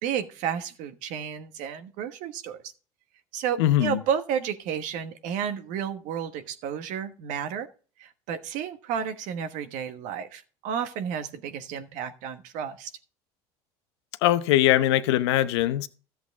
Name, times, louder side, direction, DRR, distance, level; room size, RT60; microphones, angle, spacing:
voice 1, 0.0-2.6 3.3-7.7 8.0-12.9, right 8 dB, 70° right, 1.3 m, -32 dB
voice 2, 3.6-4.0 14.2-15.9, left 13 dB, 85° left, 0.8 m, -21 dB
13.5 x 7.9 x 3.6 m
supercardioid pair, 80°, 14 cm